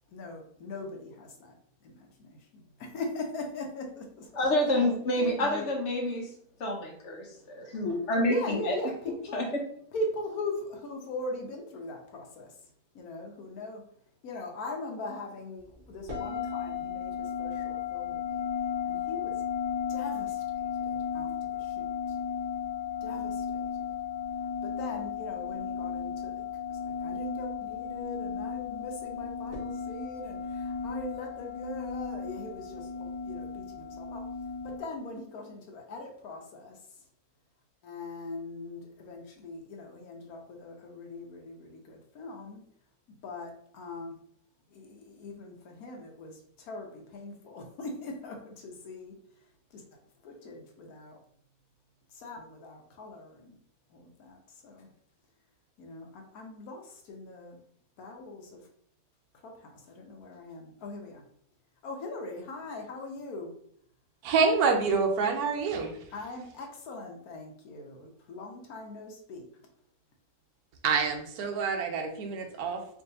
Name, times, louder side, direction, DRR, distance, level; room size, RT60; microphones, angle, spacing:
voice 1, 0.1-1.5 1.8-1.9 2.2-4.2 5.2-5.6 8.3-9.4 9.9-12.5 12.9-13.8 14.2-17.1 17.4-18.4 18.8-19.4 19.9-20.4 20.9-21.3 21.8-21.9 23.0-23.3 24.6-26.4 26.8-34.2 34.6-36.7 37.8-42.6 43.2-44.1 44.7-46.3 46.7-49.1 49.7-49.8 50.2-51.2 52.2-53.6 53.9-54.4 54.6-54.9 55.8-56.8 57.1-57.6 58.0-58.6 59.4-59.5 60.0-61.2 61.8-63.5 66.1-69.4, left 2 dB, 75° left, 2 dB, 1.2 m, -40 dB
voice 2, 4.3-6.3 6.6-8.8 9.1-9.6, left 1 dB, 60° left, 1 dB, 0.9 m, -28 dB
sound 1, 16.1-34.8, left 7 dB, 55° right, 2.0 m, -35 dB
voice 3, 64.2-65.9 70.8-73.0, right 5 dB, 85° right, 4 dB, 1.2 m, -27 dB
4.7 x 2.7 x 2.7 m, 0.65 s
omnidirectional pair, 1.6 m